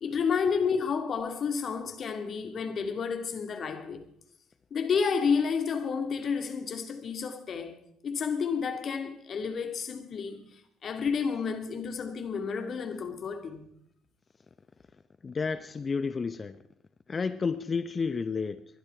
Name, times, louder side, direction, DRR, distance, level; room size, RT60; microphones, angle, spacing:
voice 1, 0.0-4.0 4.7-7.8 8.0-10.4 10.8-13.7, left 6 dB, 50° left, 2.4 m, -30 dB
voice 2, 15.2-16.6 17.1-18.6, left 5 dB, 35° left, 0.7 m, -31 dB
21.0 x 11.5 x 4.7 m
hypercardioid pair, 55°, 0 cm